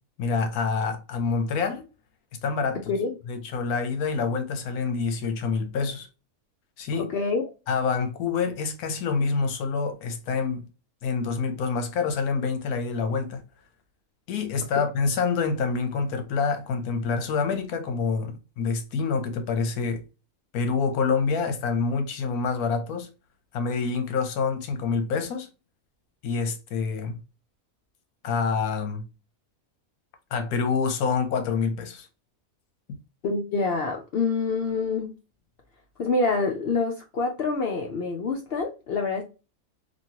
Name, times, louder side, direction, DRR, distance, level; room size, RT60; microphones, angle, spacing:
voice 1, 0.2-1.8 2.4-2.8 3.3-6.1 6.8-7.1 7.7-10.6 11.0-13.4 14.3-20.0 20.5-23.1 23.5-25.5 26.2-27.2 28.2-29.0 30.3-32.1, left 5 dB, 80° left, 1.2 m, -27 dB
voice 2, 2.9-3.2 7.0-7.4 14.7-14.8 33.2-35.1 36.0-39.2, left 4 dB, 65° left, 0.6 m, -26 dB
2.9 x 2.5 x 2.8 m
omnidirectional pair, 1.5 m